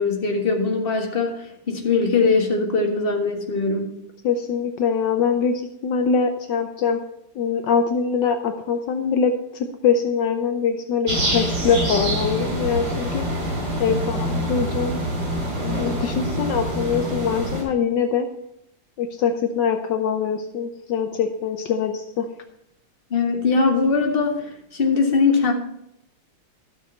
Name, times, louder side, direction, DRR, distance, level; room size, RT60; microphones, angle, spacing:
voice 1, 0.0-3.9 23.1-25.5, left 4 dB, 30° left, 2 dB, 1.6 m, -21 dB
voice 2, 4.2-7.0 7.4-13.3 13.8-15.0 15.6-18.3 19.0-22.3, left 6 dB, 75° left, 7 dB, 1.3 m, -23 dB
sound 1, 11.1-17.6, right 1 dB, 80° right, 4.6 m, -25 dB
13.0 x 7.1 x 4.3 m, 0.80 s
omnidirectional pair, 2.0 m